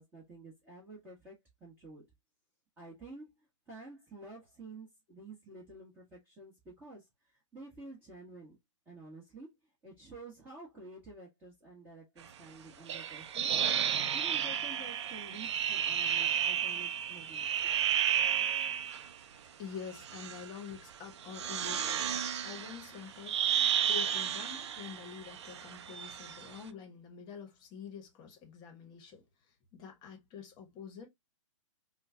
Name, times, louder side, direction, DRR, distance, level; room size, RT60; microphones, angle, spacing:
voice 1, 0.0-2.0 2.8-8.6 8.8-9.5 9.8-13.5 14.1-17.7, right 2 dB, 10° right, 1.5 m, -50 dB
sound 1, 12.9-19.1 19.9-20.5 21.2-26.6, right 9 dB, 60° right, 0.5 m, -32 dB
voice 2, 19.6-23.4 23.9-29.2 29.7-31.1, left 6 dB, 25° left, 1.2 m, -46 dB
5.4 x 2.4 x 2.7 m
hypercardioid pair, 130°, 16 cm